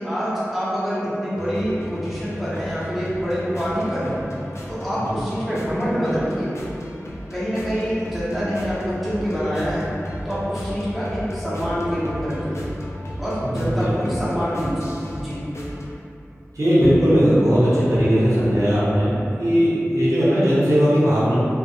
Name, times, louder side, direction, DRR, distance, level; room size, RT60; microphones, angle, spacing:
voice 1, 0.0-4.2 4.7-6.5 7.3-9.9 10.2-12.6 13.2-15.4, equal, ahead, -11 dB, 0.8 m, -25 dB
sound 1, 1.4-15.9, equal, 60° left, 0.3 m, -35 dB
voice 2, 13.4-14.1 16.5-19.1 19.4-21.4, equal, 80° right, -10 dB, 0.7 m, -18 dB
2.4 x 2.0 x 2.6 m, 2.7 s
wide cardioid pair, 45°, 5 cm